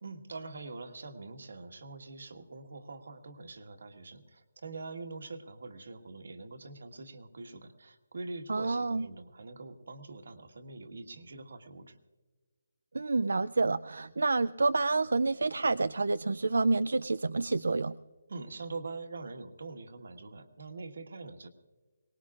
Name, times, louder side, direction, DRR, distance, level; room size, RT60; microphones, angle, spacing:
voice 1, 0.0-12.0 18.3-21.5, right 3 dB, 60° right, 7 dB, 1.5 m, -44 dB
voice 2, 8.5-9.1 12.9-18.0, right 3 dB, 90° right, 13 dB, 0.4 m, -28 dB
23.0 x 19.5 x 2.4 m, 1.3 s
hypercardioid pair, 175°, 0 cm